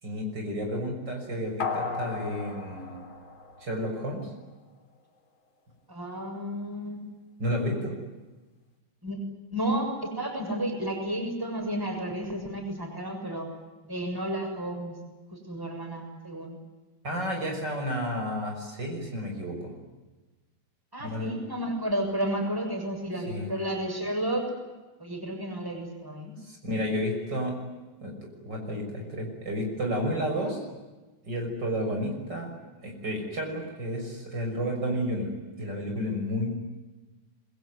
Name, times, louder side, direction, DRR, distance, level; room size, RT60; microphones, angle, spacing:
voice 1, 0.0-3.0 3.6-4.3 7.4-8.0 17.0-19.7 21.0-21.3 23.3-23.5 26.4-27.5 28.0-30.7 31.2-32.5 32.8-35.3 35.6-36.6, equal, 55° right, 2 dB, 6.9 m, -31 dB
sound 1, 1.6-4.2 4.5-4.6, left 4 dB, 75° left, 4.0 m, -35 dB
voice 2, 5.9-7.1 9.0-9.2 9.5-13.5 13.8-15.0 15.3-16.6 20.9-24.5 25.0-26.3, right 1 dB, 10° right, 2 dB, 7.0 m, -32 dB
27.5 x 22.5 x 9.6 m, 1.2 s
omnidirectional pair, 2.2 m